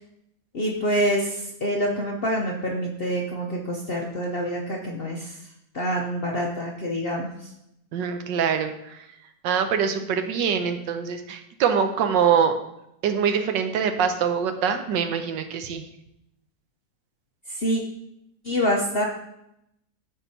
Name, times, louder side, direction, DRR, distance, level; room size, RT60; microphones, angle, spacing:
voice 1, 0.5-5.4 5.7-7.5 17.5-17.8 18.4-19.0, equal, 55° left, 0 dB, 0.6 m, -26 dB
voice 2, 7.9-9.1 9.4-12.5 13.0-15.8, right 7 dB, 85° right, 7 dB, 1.4 m, -24 dB
13.5 x 4.7 x 2.7 m, 0.81 s
omnidirectional pair, 1.9 m